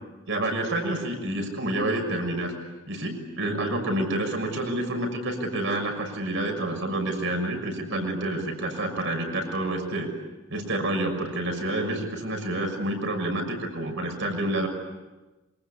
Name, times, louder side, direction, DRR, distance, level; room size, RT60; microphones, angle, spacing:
voice 1, 0.3-2.5 2.9-10.1 10.5-14.7, right 1 dB, 60° right, 4 dB, 6.3 m, -28 dB
27.0 x 24.5 x 8.5 m, 1.2 s
head